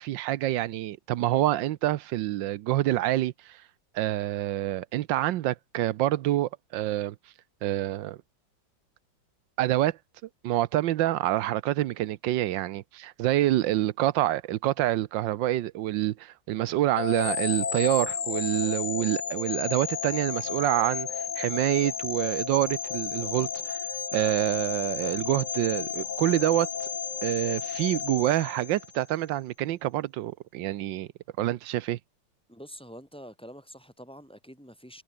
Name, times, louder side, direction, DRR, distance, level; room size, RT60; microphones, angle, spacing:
voice 1, 0.0-3.6 3.9-7.1 7.6-8.2 9.6-10.0 10.4-21.1 21.4-23.8 24.1-26.7 27.2-31.1 31.4-32.0, right 14 dB, 80° right, 1.4 m, -27 dB
sound 1, 17.0-29.1, left 7 dB, 45° left, 1.5 m, -33 dB
voice 2, 32.5-35.0, equal, 5° left, 6.1 m, -46 dB
omnidirectional pair, 2.1 m